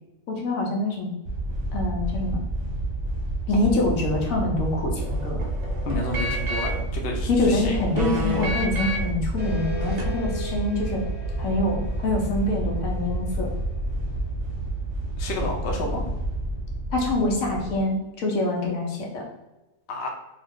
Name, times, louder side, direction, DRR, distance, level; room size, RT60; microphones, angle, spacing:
voice 1, 0.3-1.1 1.7-2.4 3.5-5.4 7.3-11.0 11.4-13.5 16.9-19.2, left 2 dB, 85° left, -1 dB, 1.2 m, -25 dB
sound 1, 1.2-17.8, right 1 dB, 50° right, 0.8 m, -29 dB
sound 2, 5.0-6.9 7.5-9.2 9.8-10.0, equal, 65° right, 0.4 m, -31 dB
voice 2, 5.9-7.7 15.2-16.1 19.9-20.1, left 2 dB, 60° left, 0 dB, 0.8 m, -31 dB
sound 3, 9.4-14.4, left 1 dB, 10° right, 0.6 m, -39 dB
2.7 x 2.3 x 3.5 m, 1.0 s
omnidirectional pair, 1.4 m